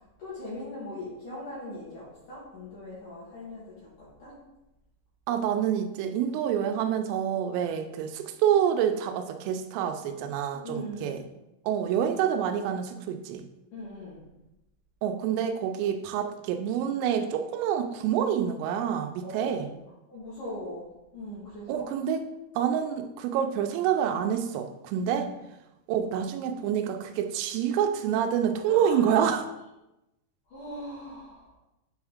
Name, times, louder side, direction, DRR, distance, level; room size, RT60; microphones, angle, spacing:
voice 1, 0.2-4.4 10.6-11.2 13.7-14.2 19.2-19.7 20.1-20.9 21.1-21.9 25.1-25.3 28.7-29.3 30.5-31.5, left 1 dB, 65° left, -8 dB, 2.1 m, -40 dB
voice 2, 5.3-11.2 11.7-13.4 15.0-19.7 21.7-22.2 22.6-25.3 25.9-29.5, right 9 dB, 90° right, 6 dB, 3.2 m, -27 dB
8.6 x 3.6 x 3.5 m, 0.93 s
omnidirectional pair, 5.7 m